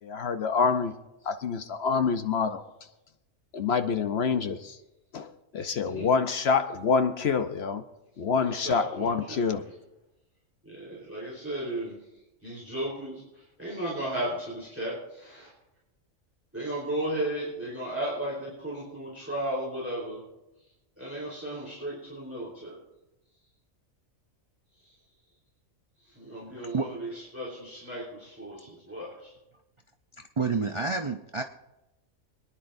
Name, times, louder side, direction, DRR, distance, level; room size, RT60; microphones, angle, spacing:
voice 1, 0.0-0.9 1.2-2.6 3.5-4.8 5.1-7.8 8.2-9.6, left 5 dB, 55° left, 9 dB, 0.9 m, -26 dB
voice 2, 8.4-9.6 10.6-12.0 12.4-15.5 16.5-20.2 21.0-22.8 24.8-25.0 26.0-29.3, right 1 dB, 10° right, -5 dB, 3.8 m, -35 dB
voice 3, 26.6-26.9 30.4-31.4, right 4 dB, 55° right, 4 dB, 0.3 m, -29 dB
25.5 x 10.0 x 2.6 m, 0.97 s
omnidirectional pair, 1.4 m